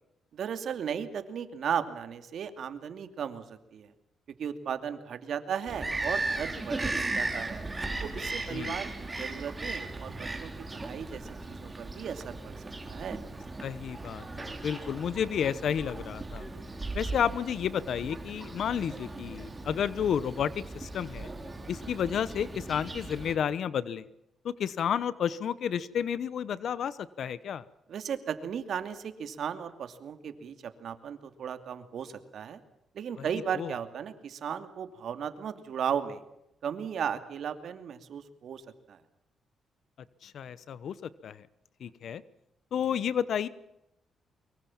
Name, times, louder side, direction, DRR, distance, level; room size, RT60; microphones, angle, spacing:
voice 1, 0.3-3.9 4.4-7.6 8.0-11.2 11.5-13.2 27.9-32.6 32.9-36.2 36.6-38.6 38.9-39.0, right 8 dB, 65° right, 9 dB, 2.6 m, -36 dB
Bird vocalization bird call bird song, 5.7-23.3, right 2 dB, 20° right, 3.9 m, -37 dB
voice 2, 13.6-16.4 16.9-21.3 21.7-24.1 24.4-27.6 33.5-33.7 40.2-40.9 41.2-41.4 41.8-42.2 42.7-43.5, left 8 dB, 65° left, 17 dB, 1.0 m, -31 dB
24.0 x 23.0 x 7.3 m, 0.85 s
cardioid pair, 100°, 0 cm